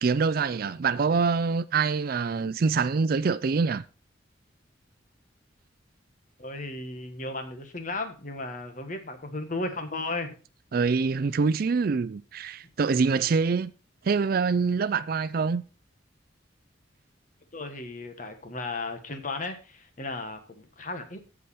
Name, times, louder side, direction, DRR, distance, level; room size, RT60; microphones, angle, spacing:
voice 1, 0.0-3.8 10.7-13.7 14.0-15.6, right 5 dB, 50° right, 0.4 m, -25 dB
voice 2, 6.4-10.4 17.5-21.2, left 2 dB, 45° left, 1.5 m, -35 dB
14.5 x 5.0 x 4.2 m
head